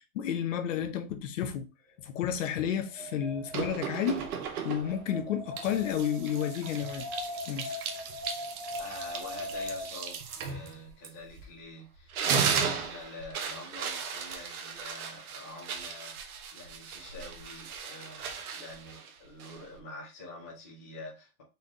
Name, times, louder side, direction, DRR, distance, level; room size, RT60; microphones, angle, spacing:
voice 1, 0.0-1.7 2.0-4.3 4.6-7.1 7.5-7.8, left 9 dB, 55° left, 0.8 m, -31 dB
Wind, 2.2-10.1, left 2 dB, 40° right, 1.4 m, -41 dB
sound 1, 3.5-5.1 5.6-11.6 12.0-19.8, right 6 dB, 75° right, 1.0 m, -36 dB
voice 2, 8.8-21.4, left 2 dB, 10° left, 0.4 m, -47 dB
4.1 x 3.3 x 3.6 m
supercardioid pair, 180°, 45 cm